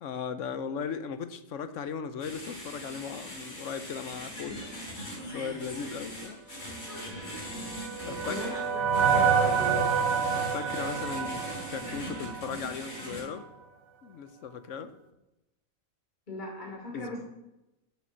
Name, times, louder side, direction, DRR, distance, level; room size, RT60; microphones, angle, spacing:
voice 1, 0.0-4.7 5.0-6.4 8.0-8.4 10.3-13.5 14.0-14.9 16.9-17.2, left 6 dB, 65° left, 11 dB, 1.1 m, -37 dB
sound 1, 2.2-13.2, equal, 90° left, 4.3 m, -41 dB
sound 2, 7.3-12.6, right 6 dB, 60° right, 1.2 m, -28 dB
voice 2, 7.9-9.8 16.3-17.2, left 1 dB, 35° left, -2 dB, 2.8 m, -39 dB
7.2 x 6.9 x 7.4 m, 0.93 s
omnidirectional pair, 1.4 m